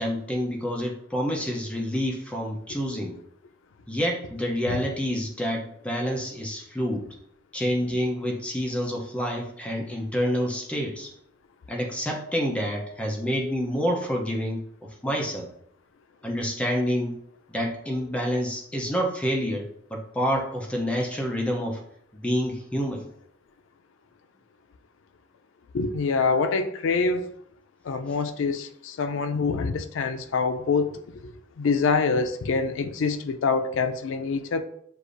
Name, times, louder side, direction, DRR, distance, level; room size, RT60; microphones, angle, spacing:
voice 1, 0.0-3.2 3.9-7.1 7.5-11.1 11.7-14.6 15.0-15.5 16.2-17.2 17.5-21.8 22.1-23.1, equal, 5° left, -1 dB, 0.6 m, -28 dB
voice 2, 25.7-27.3 27.9-34.6, left 4 dB, 85° left, 9 dB, 0.4 m, -25 dB
6.6 x 2.5 x 2.5 m, 0.68 s
head